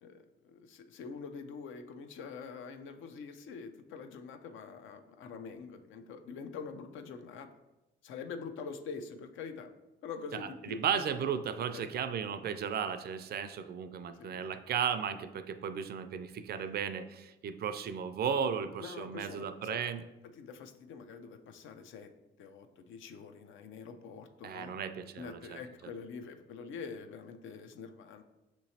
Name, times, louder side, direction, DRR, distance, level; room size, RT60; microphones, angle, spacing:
voice 1, 0.0-7.5 8.0-9.7 10.0-10.8 11.7-11.9 14.1-14.4 18.8-19.8 20.3-22.1 22.4-24.7 25.2-28.2, left 5 dB, 80° left, 8 dB, 0.5 m, -45 dB
voice 2, 10.3-20.0 24.4-25.6, right 7 dB, 55° right, 11 dB, 0.4 m, -35 dB
6.4 x 3.0 x 2.7 m, 0.99 s
cardioid pair, 90°, 20 cm